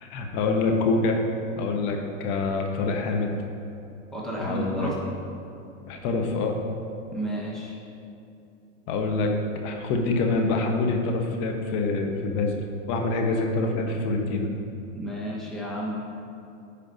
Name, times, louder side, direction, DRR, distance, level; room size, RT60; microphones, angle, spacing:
voice 1, 0.0-1.2 1.6-3.4 4.4-4.9 5.9-6.6 8.9-9.3 9.6-12.6 12.9-14.5, left 3 dB, 45° left, 2 dB, 1.2 m, -26 dB
voice 2, 4.1-5.0 7.1-7.7 14.9-16.0, right 1 dB, ahead, -6 dB, 1.4 m, -31 dB
15.0 x 5.1 x 2.8 m, 2.7 s
hypercardioid pair, 130°, 39 cm